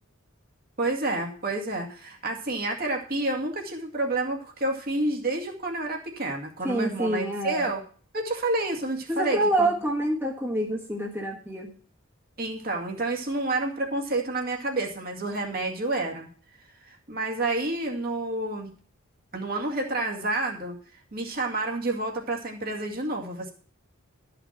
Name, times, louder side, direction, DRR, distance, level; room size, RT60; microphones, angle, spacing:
voice 1, 0.8-7.8 8.1-9.7 12.4-16.3 16.8-18.7 19.3-20.8 21.1-23.5, right 2 dB, 45° right, 1 dB, 2.2 m, -29 dB
voice 2, 6.6-7.7 9.1-11.7, right 1 dB, 10° right, -3 dB, 1.6 m, -27 dB
13.0 x 6.0 x 5.9 m, 0.44 s
head